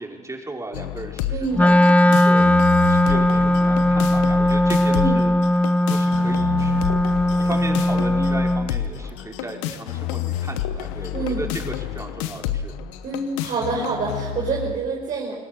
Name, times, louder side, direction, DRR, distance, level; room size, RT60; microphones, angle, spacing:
voice 1, 0.0-5.3 5.9-7.1 7.4-12.7, right 2 dB, 20° right, 1 dB, 5.0 m, -35 dB
sound 1, 0.7-14.7, left 11 dB, 85° left, 1.1 m, -29 dB
voice 2, 1.3-1.7 4.9-5.2 11.1-11.4 13.0-15.3, right 4 dB, 60° right, -3 dB, 5.2 m, -26 dB
Wind instrument woodwind instrument, 1.5-8.7, left 1 dB, 10° left, 0.8 m, -18 dB
28.5 x 19.0 x 6.8 m, 1.4 s
hypercardioid pair, 60°, 15 cm